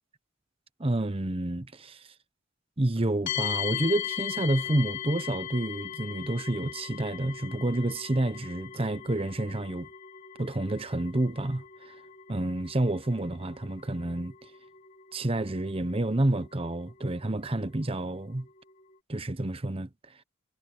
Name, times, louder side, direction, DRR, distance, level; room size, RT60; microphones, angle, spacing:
voice 1, 0.8-2.1 2.8-9.9 10.4-12.0 12.3-14.3 15.1-18.5 19.1-19.9, right 1 dB, 30° right, 1.0 m, -29 dB
sound 1, 3.3-19.0, left 11 dB, 40° left, 3.5 m, -40 dB
head